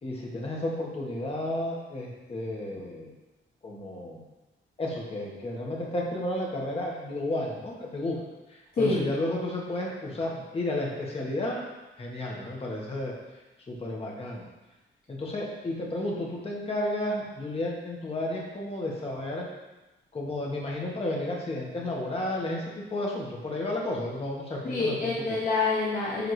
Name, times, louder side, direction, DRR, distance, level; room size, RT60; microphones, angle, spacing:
voice 1, 0.0-3.1 3.6-4.2 4.8-8.2 8.8-11.6 12.0-13.1 13.7-14.4 15.1-19.5 20.1-25.1, left 1 dB, 30° left, -2 dB, 1.4 m, -32 dB
voice 2, 8.7-9.1 24.6-26.3, left 3 dB, 45° left, -6 dB, 1.0 m, -26 dB
10.5 x 3.7 x 3.2 m, 1.1 s
wide cardioid pair, 150°, 21 cm